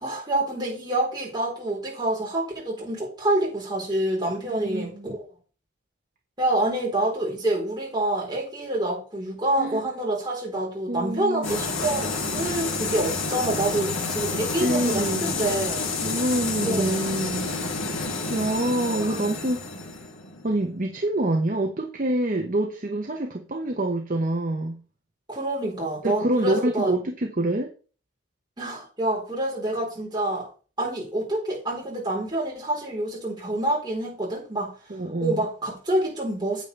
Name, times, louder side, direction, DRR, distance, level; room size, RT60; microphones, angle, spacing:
voice 1, 0.0-5.2 6.4-15.9 16.6-17.0 19.0-19.2 25.3-26.9 28.6-30.5 30.8-34.7 35.2-36.6, right 1 dB, 20° right, 3.9 m, -27 dB
voice 2, 4.5-5.1 9.6-9.8 10.9-11.6 14.5-15.3 16.0-19.6 20.4-24.8 26.0-27.7 34.9-35.4, right 1 dB, 40° right, 0.9 m, -26 dB
wreck wet, 11.4-21.0, left 3 dB, 80° left, 2.3 m, -29 dB
9.3 x 8.1 x 3.3 m
head